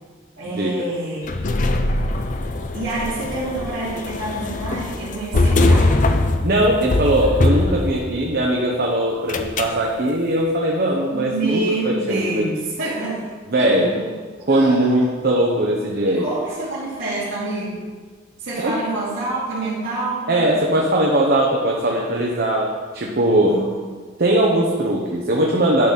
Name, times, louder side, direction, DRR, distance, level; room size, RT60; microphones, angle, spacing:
voice 1, 0.4-1.4 1.8-2.2 2.7-5.9 11.1-13.3 13.6-14.1 14.4-14.9 16.0-17.8 18.4-20.6 23.4-23.8, right 2 dB, 85° right, -13 dB, 2.9 m, -27 dB
sound 1, 1.2-8.3 9.3-9.8, left 2 dB, 40° left, 0.5 m, -21 dB
voice 2, 6.4-12.4 13.5-13.9 14.5-16.3 18.6-18.8 20.3-23.6 24.2-25.9, right 1 dB, 50° right, -1 dB, 0.9 m, -19 dB
10.5 x 4.0 x 5.8 m, 1.5 s
head